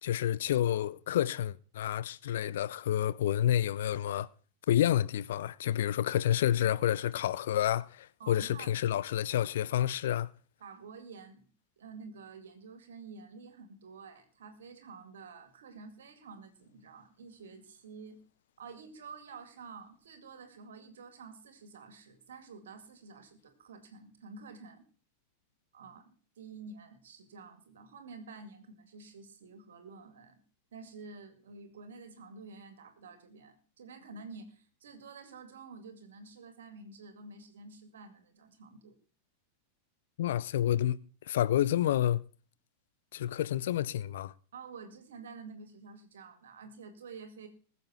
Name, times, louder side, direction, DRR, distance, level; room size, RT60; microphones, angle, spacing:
voice 1, 0.0-4.3 4.7-10.3 40.2-41.0 41.3-42.2 43.1-44.3, left 11 dB, 60° left, 0.5 m, -29 dB
voice 2, 8.2-8.7 10.6-11.5 11.8-18.2 18.6-24.8 25.7-30.4 30.7-39.0 44.5-47.5, right 4 dB, 65° right, 2.1 m, -49 dB
20.5 x 7.0 x 4.4 m
figure-of-eight pair, 90°, 0 cm